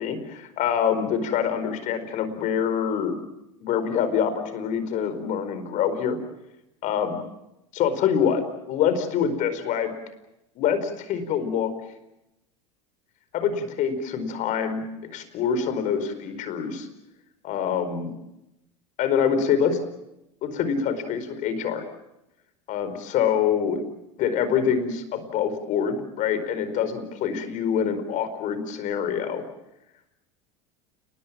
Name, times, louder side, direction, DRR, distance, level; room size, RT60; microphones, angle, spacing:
voice 1, 0.0-3.2 3.6-6.2 6.8-7.2 7.8-9.9 10.5-11.7 13.3-14.8 15.1-16.9 17.4-18.1 19.0-19.8 20.4-21.8 22.7-23.8 24.2-29.4, left 7 dB, 55° left, 10 dB, 4.8 m, -25 dB
30.0 x 20.0 x 7.6 m, 0.89 s
hypercardioid pair, 90°, 16 cm